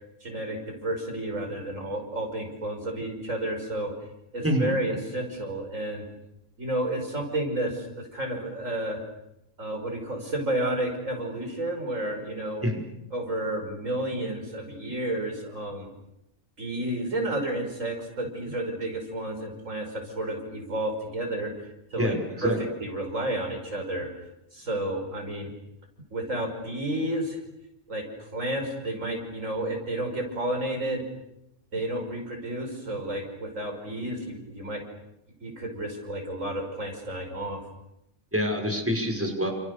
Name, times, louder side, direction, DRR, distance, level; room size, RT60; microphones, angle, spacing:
voice 1, 0.2-3.9 4.3-6.0 6.6-9.0 9.6-12.7 13.1-15.9 16.6-21.5 21.9-22.1 22.4-22.5 22.8-24.1 24.5-25.5 26.1-27.4 27.9-31.0 31.7-34.8 35.4-37.6, right 1 dB, 70° right, 3 dB, 5.8 m, -31 dB
voice 2, 4.4-4.7 12.6-12.8 21.9-22.6 38.3-39.5, equal, 10° right, 2 dB, 5.6 m, -26 dB
30.0 x 28.5 x 6.8 m, 0.85 s
omnidirectional pair, 1.4 m